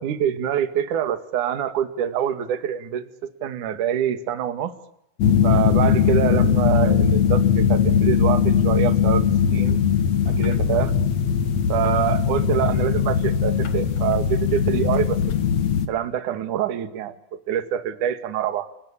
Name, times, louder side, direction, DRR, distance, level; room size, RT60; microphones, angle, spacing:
voice 1, 0.0-3.1 3.4-4.7 5.4-9.8 10.3-10.9 11.7-15.2 15.9-18.7, right 10 dB, 50° right, 10 dB, 2.7 m, -25 dB
sound 1, 5.2-15.9, left 7 dB, 55° left, 1.9 m, -20 dB
29.5 x 20.5 x 8.6 m, 0.75 s
omnidirectional pair, 5.8 m